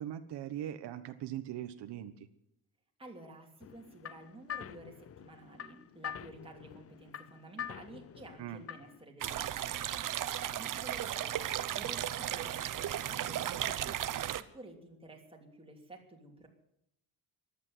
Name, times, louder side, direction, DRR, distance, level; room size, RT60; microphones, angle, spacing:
voice 1, 0.0-2.3 8.4-8.6, right 11 dB, 80° right, 9 dB, 1.2 m, -40 dB
voice 2, 3.0-10.1 10.6-16.5, right 2 dB, 15° right, 1 dB, 3.0 m, -52 dB
sound 1, 3.6-9.0, left 10 dB, 35° left, 0.6 m, -45 dB
sound 2, 9.2-14.4, right 11 dB, 50° right, 0.9 m, -35 dB
15.0 x 12.0 x 7.9 m, 0.78 s
cardioid pair, 155°, 40 cm